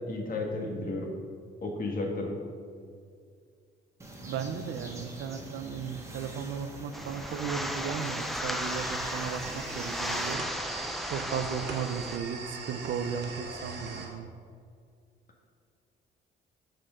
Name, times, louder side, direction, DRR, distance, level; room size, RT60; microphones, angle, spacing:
voice 1, 0.1-1.1 1.6-2.4, left 2 dB, 45° left, 1 dB, 1.7 m, -33 dB
sound 1, 4.0-10.3, right 1 dB, 15° right, 1.5 m, -45 dB
voice 2, 4.2-10.4 11.0-14.3, right 7 dB, 75° right, 9 dB, 0.6 m, -35 dB
sound 2, 6.9-12.2, equal, ahead, 0.6 m, -35 dB
sound 3, 8.6-14.1, right 4 dB, 60° right, 1.6 m, -41 dB
6.5 x 6.4 x 5.2 m, 2.2 s
cardioid pair, 90°, 20 cm